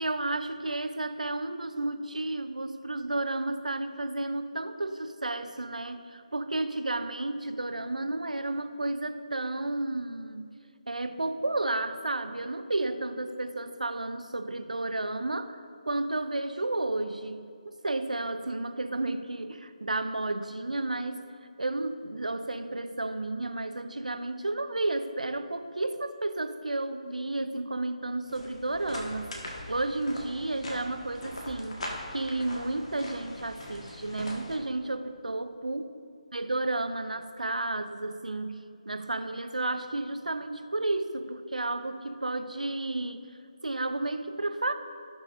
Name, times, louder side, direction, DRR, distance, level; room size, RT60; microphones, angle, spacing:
voice 1, 0.0-10.6 10.9-15.6 15.8-21.3 21.6-29.4 29.7-35.8 36.3-43.3 43.6-44.7, right 2 dB, 80° right, 10 dB, 0.6 m, -32 dB
sound 1, 28.2-34.6, left 1 dB, 55° left, 1.8 m, -41 dB
16.5 x 6.3 x 2.6 m, 2.3 s
figure-of-eight pair, 150°, 4 cm